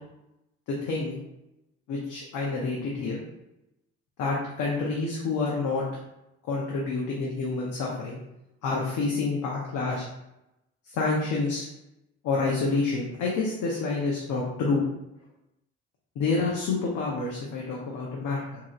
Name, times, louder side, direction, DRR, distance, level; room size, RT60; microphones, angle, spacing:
voice 1, 0.8-1.2 1.9-3.2 4.2-5.8 6.5-8.2 8.6-10.1 10.9-11.7 12.2-14.8 16.2-18.6, left 3 dB, 80° left, -3 dB, 0.8 m, -28 dB
3.8 x 2.9 x 2.4 m, 0.88 s
cardioid pair, 90°, 30 cm